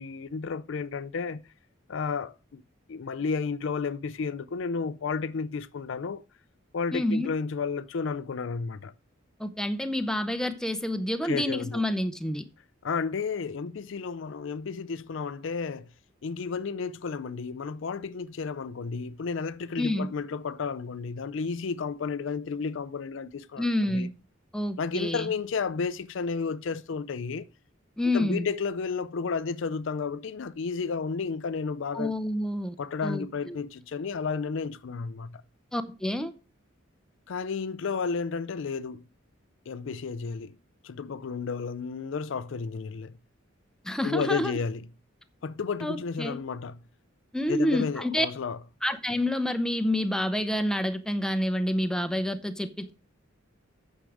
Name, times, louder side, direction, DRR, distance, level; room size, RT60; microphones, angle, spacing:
voice 1, 0.0-1.5 1.9-2.6 2.9-6.2 6.7-8.9 11.2-11.8 12.8-15.9 16.2-24.1 24.8-27.5 28.1-32.1 32.8-35.4 37.3-39.0 39.7-40.6 40.8-43.1 44.0-44.8 45.4-46.8 47.5-48.6, left 5 dB, 65° left, 0.4 m, -32 dB
voice 2, 6.9-7.3 9.4-12.4 19.8-20.1 23.6-24.1 24.5-25.3 28.0-28.5 31.9-32.8 33.0-33.6 35.7-36.3 43.8-44.5 45.8-46.4 47.3-48.3 48.8-52.9, left 1 dB, 5° left, 0.7 m, -28 dB
9.1 x 6.5 x 4.8 m
head